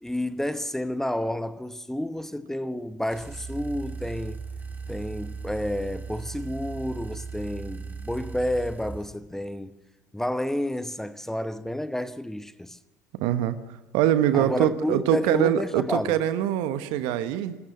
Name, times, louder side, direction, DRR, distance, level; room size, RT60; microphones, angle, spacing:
voice 1, 0.0-4.4 4.9-9.7 10.1-12.8 14.3-16.2, left 1 dB, 5° left, 1.0 m, -30 dB
sound 1, 3.1-9.2, right 5 dB, 20° right, 2.4 m, -37 dB
voice 2, 13.1-13.6 13.9-17.6, right 11 dB, 65° right, 1.2 m, -23 dB
28.5 x 13.0 x 7.8 m
figure-of-eight pair, 65°, 9 cm